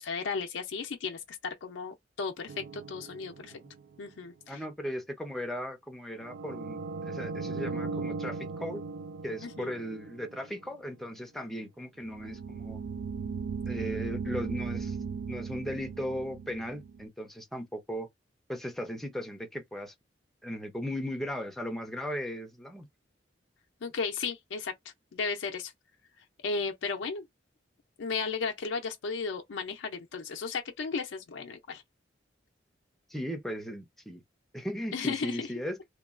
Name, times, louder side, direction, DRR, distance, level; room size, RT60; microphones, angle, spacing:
voice 1, 0.0-3.6 4.0-4.6 9.4-9.7 23.8-25.7 26.4-27.3 28.0-31.8 34.9-35.5, left 5 dB, 85° left, 0.5 m, -35 dB
sound 1, 2.5-3.9 6.2-10.6 12.0-17.0, right 4 dB, 80° right, 0.3 m, -38 dB
voice 2, 4.5-8.8 9.2-12.8 13.7-15.0 15.3-18.1 18.5-19.9 20.4-22.9 33.1-34.2 34.5-35.8, equal, ahead, 0.5 m, -37 dB
2.9 x 2.2 x 2.4 m
head